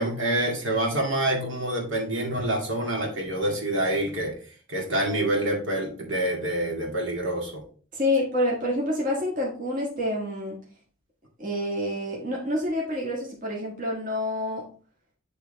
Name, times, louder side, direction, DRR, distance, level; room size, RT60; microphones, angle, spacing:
voice 1, 0.0-4.3 4.7-7.6, right 1 dB, 65° right, 0 dB, 2.1 m, -27 dB
voice 2, 7.9-10.6 11.4-14.7, left 1 dB, 40° right, -3 dB, 1.7 m, -27 dB
9.8 x 3.5 x 4.0 m, 0.41 s
head